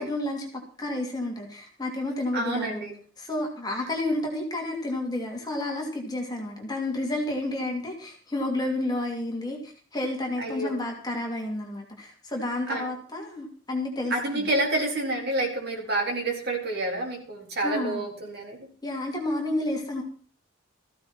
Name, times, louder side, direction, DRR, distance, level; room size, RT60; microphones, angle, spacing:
voice 1, 0.0-2.9 3.2-14.5 17.6-18.1 18.8-20.0, left 1 dB, 20° left, 1 dB, 2.8 m, -31 dB
voice 2, 2.3-2.9 10.4-10.7 12.7-12.9 14.1-18.6, right 2 dB, 50° right, 0 dB, 4.3 m, -28 dB
15.5 x 15.0 x 4.4 m, 0.43 s
head